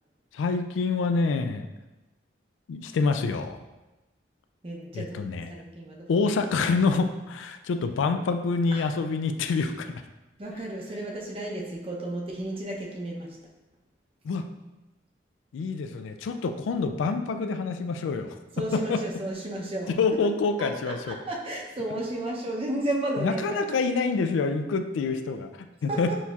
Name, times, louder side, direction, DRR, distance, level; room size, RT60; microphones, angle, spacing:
voice 1, 0.3-1.7 2.7-3.6 4.9-5.5 6.1-9.9 14.2-14.5 15.5-18.4 18.7-19.0 19.9-21.2 23.2-26.1, left 4 dB, 85° left, 7 dB, 0.3 m, -27 dB
voice 2, 4.6-6.2 8.7-8.9 10.4-13.4 18.5-20.2 20.6-23.8 25.9-26.2, right 1 dB, 30° right, -1 dB, 0.6 m, -33 dB
6.1 x 2.8 x 2.3 m, 1.1 s
head